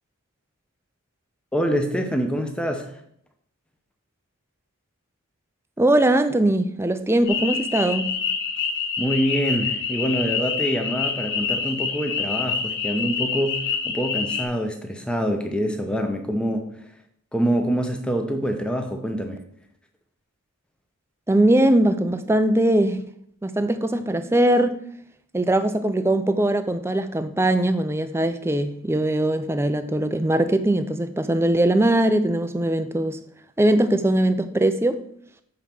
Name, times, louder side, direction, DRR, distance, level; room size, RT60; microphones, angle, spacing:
voice 1, 1.5-3.0 9.0-16.8 17.3-19.4, equal, 5° left, 4 dB, 0.8 m, -25 dB
voice 2, 5.8-8.1 21.3-23.0 23.4-24.8 25.3-33.2 33.6-35.0, right 1 dB, 10° right, 10 dB, 0.4 m, -21 dB
sound 1, 7.3-14.4, left 5 dB, 50° left, 1.1 m, -27 dB
7.1 x 4.8 x 5.9 m, 0.68 s
head